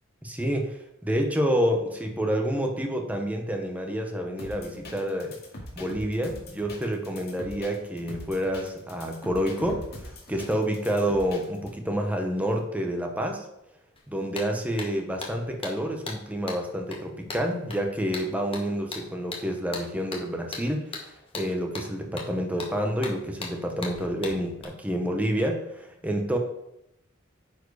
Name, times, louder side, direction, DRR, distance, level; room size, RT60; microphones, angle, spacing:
voice 1, 0.2-5.3 5.8-13.5 14.1-26.4, equal, 5° right, 3 dB, 0.9 m, -28 dB
sound 1, 4.4-11.7, left 1 dB, 50° left, 2.3 m, -42 dB
sound 2, 14.0-14.1 14.3-24.6, left 3 dB, 25° left, 1.3 m, -39 dB
9.4 x 4.6 x 4.8 m, 0.84 s
head